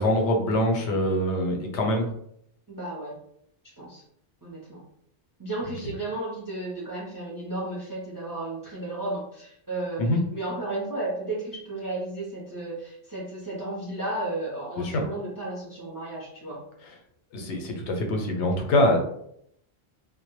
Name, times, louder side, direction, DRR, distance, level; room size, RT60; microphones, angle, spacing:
voice 1, 0.0-2.1 10.0-10.2 14.8-15.0 17.3-19.0, left 1 dB, 90° left, 2 dB, 0.9 m, -24 dB
voice 2, 2.7-3.2 3.6-4.0 4.4-4.8 5.4-16.6, right 2 dB, 30° right, -4 dB, 0.4 m, -33 dB
2.1 x 2.1 x 2.9 m, 0.73 s
omnidirectional pair, 1.1 m